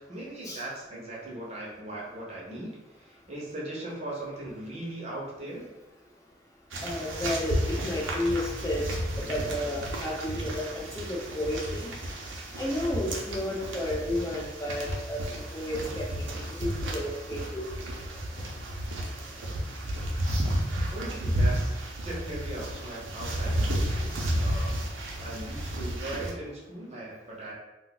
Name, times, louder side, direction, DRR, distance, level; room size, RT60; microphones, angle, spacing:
voice 1, 0.0-5.7 20.9-21.8 22.0-24.8 25.1-27.5, right 1 dB, 35° right, -5 dB, 0.7 m, -39 dB
sound 1, 6.7-26.3, right 1 dB, 75° right, 0.6 m, -32 dB
voice 2, 6.8-11.9 12.6-17.7, left 1 dB, 15° left, -4 dB, 0.3 m, -32 dB
2.4 x 2.2 x 3.9 m, 1.0 s
head